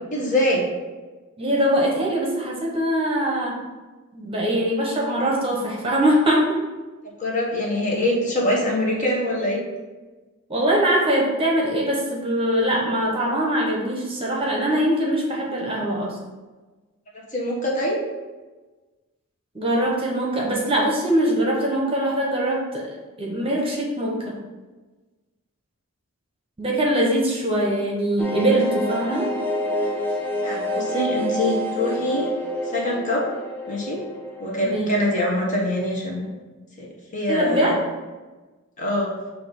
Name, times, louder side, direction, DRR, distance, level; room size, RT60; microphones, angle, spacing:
voice 1, 0.1-0.6 7.2-9.6 17.3-18.0 30.4-32.3 32.6-33.2 33.7-34.0 34.4-36.3 36.8-36.9 37.1-37.8 38.8-39.1, left 1 dB, 35° left, -3 dB, 1.3 m, -24 dB
voice 2, 1.4-3.6 4.1-6.6 10.5-16.2 19.5-22.9 23.2-24.3 26.6-29.3 34.6-34.9 37.3-37.7, right 1 dB, 25° right, -2 dB, 0.9 m, -22 dB
sound 1, 28.2-35.7 35.9-36.0 36.3-36.4, equal, 10° left, 0.7 m, -28 dB
6.6 x 2.8 x 5.3 m, 1.2 s
head